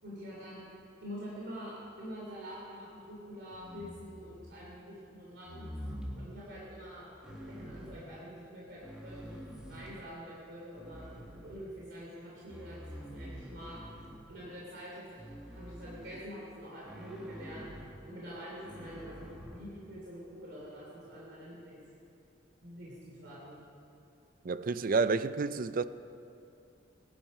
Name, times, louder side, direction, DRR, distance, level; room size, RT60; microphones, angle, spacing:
voice 1, 0.0-5.7 6.1-11.1 11.3-13.8 14.3-15.2 15.5-17.7 18.1-21.8 22.6-23.6, equal, 65° right, 3.2 m, -46 dB
sound 1, 3.5-4.5 5.4-6.3 7.2-8.0 8.7-10.1 10.7-11.9 12.5-14.4 15.2-16.3 16.8-18.0 18.6-19.6, equal, 5° right, 1.9 m, -46 dB
voice 2, 24.4-25.8, right 4 dB, 50° right, 0.5 m, -29 dB
19.0 x 11.0 x 5.6 m
head